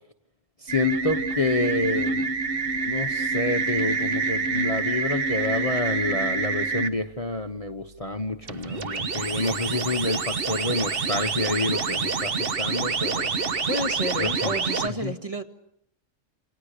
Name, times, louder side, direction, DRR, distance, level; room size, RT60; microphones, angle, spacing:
voice 1, 0.6-2.3 2.8-13.3 14.2-14.5 14.8-15.1, left 2 dB, 30° left, 7 dB, 1.2 m, -28 dB
sound 1, 0.7-6.9 8.4-14.9, right 4 dB, 45° right, 1.4 m, -27 dB
voice 2, 13.7-15.4, equal, 25° right, 5 dB, 2.2 m, -30 dB
28.5 x 28.0 x 6.7 m, 0.74 s
omnidirectional pair, 1.4 m